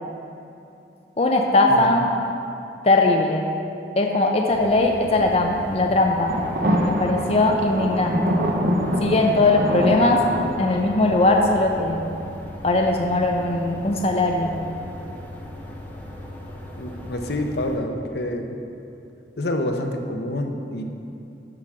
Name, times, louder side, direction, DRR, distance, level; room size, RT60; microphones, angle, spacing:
voice 1, 1.2-2.1 2.8-3.5 4.0-6.4 6.8-8.5 9.0-10.2 10.6-12.0 12.6-14.6, left 2 dB, 35° left, 2 dB, 0.6 m, -20 dB
sound 1, 4.5-17.8, left 1 dB, 10° left, 0.9 m, -38 dB
sound 2, 6.3-11.6, equal, 55° right, 1.0 m, -25 dB
voice 2, 16.8-18.6 19.4-20.8, left 1 dB, 70° left, 4 dB, 0.8 m, -27 dB
11.5 x 5.0 x 6.2 m, 2.7 s
head